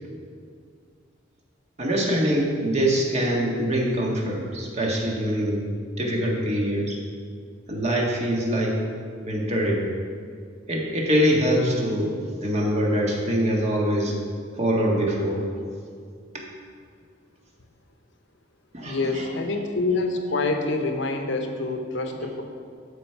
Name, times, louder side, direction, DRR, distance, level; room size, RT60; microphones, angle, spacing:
voice 1, 1.8-5.7 6.0-6.9 7.7-8.8 9.2-9.8 10.7-12.1 12.4-14.1 14.6-15.4 16.3-16.5 18.7-19.3, equal, 35° right, -2 dB, 1.6 m, -24 dB
voice 2, 18.8-22.4, left 3 dB, 65° left, 5 dB, 0.9 m, -26 dB
12.5 x 5.1 x 4.6 m, 2.2 s
head